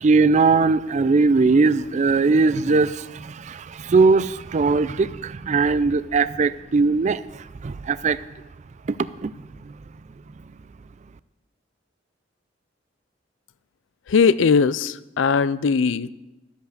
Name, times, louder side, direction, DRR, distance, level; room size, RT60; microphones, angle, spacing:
voice 1, 0.0-8.2 8.8-9.3 9.6-9.8, right 4 dB, 40° right, 0.4 m, -20 dB
voice 2, 14.1-16.1, left 5 dB, 80° left, 0.4 m, -19 dB
12.5 x 8.1 x 6.6 m
head